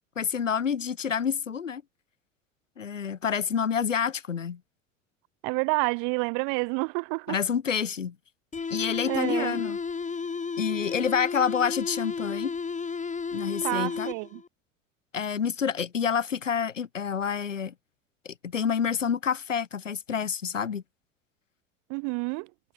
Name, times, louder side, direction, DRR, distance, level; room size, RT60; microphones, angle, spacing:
voice 1, 0.2-1.8 2.8-4.6 7.3-8.2 8.7-9.8 10.6-12.6 13.3-14.1 15.1-17.7 18.3-20.8, left 7 dB, 80° left, 4.0 m, -28 dB
voice 2, 5.4-7.4 9.1-9.6 13.6-14.4 21.9-22.5, right 36 dB, 55° right, 7.7 m, -29 dB
sound 1, 8.5-14.5, left 5 dB, 20° left, 5.1 m, -33 dB
figure-of-eight pair, 70°, 37 cm